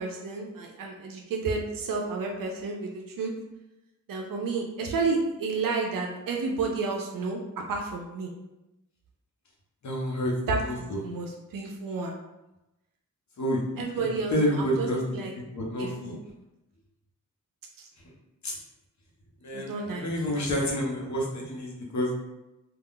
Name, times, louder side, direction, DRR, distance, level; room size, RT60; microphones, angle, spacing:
voice 1, 0.0-3.3 4.1-8.3 10.5-12.1 13.8-14.9 15.1-15.3 15.8-16.2 17.8-17.9 19.5-20.7, right 4 dB, 85° right, 1 dB, 0.5 m, -31 dB
voice 2, 9.8-10.3 10.6-11.0 13.4-13.6 14.3-15.0 15.5-16.1 18.4-18.5 19.4-22.1, equal, 60° left, -2 dB, 0.9 m, -28 dB
2.4 x 2.4 x 3.7 m, 0.96 s
wide cardioid pair, 85°, 33 cm